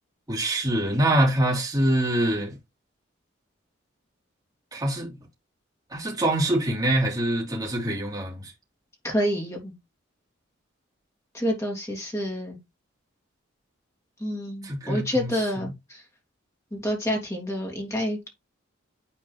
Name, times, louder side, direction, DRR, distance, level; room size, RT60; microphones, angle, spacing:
voice 1, 0.3-2.6 4.7-5.1 5.9-8.5 14.6-15.3, right 1 dB, 20° right, 3.4 m, -24 dB
voice 2, 9.0-9.7 11.3-12.6 14.2-16.0 16.7-18.3, equal, 15° left, 2.9 m, -28 dB
10.0 x 4.4 x 3.4 m
head